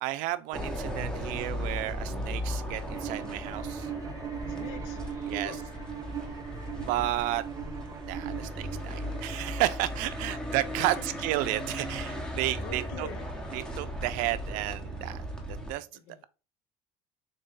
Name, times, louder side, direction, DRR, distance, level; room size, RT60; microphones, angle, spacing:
voice 1, 0.0-3.9 5.3-5.6 6.8-7.4 8.1-13.1 13.5-15.9, right 16 dB, 75° right, 0.4 m, -32 dB
sound 1, 0.5-15.7, equal, 5° left, 1.0 m, -37 dB
sound 2, 2.2-9.3, left 2 dB, 55° left, 2.2 m, -55 dB
Bowed string instrument, 2.9-9.5, right 8 dB, 25° right, 0.5 m, -39 dB
voice 2, 4.5-5.7 10.3-10.4 10.8-11.1 12.6-13.4 15.9-16.3, left 9 dB, 75° left, 0.6 m, -45 dB
3.7 x 2.6 x 3.6 m
supercardioid pair, 110°, 14 cm